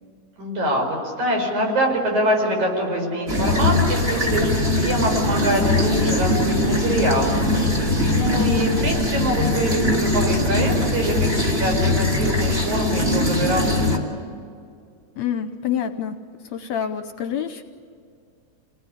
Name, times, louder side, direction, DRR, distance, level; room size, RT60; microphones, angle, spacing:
voice 1, 0.4-7.6 8.0-14.1, right 1 dB, 65° right, 1 dB, 6.6 m, -24 dB
sound 1, 3.3-14.0, left 1 dB, 20° right, 2.5 m, -21 dB
voice 2, 8.5-8.8 15.2-16.2 16.4-17.6, left 8 dB, 70° left, 9 dB, 1.8 m, -27 dB
28.0 x 19.0 x 9.9 m, 2.3 s
omnidirectional pair, 3.7 m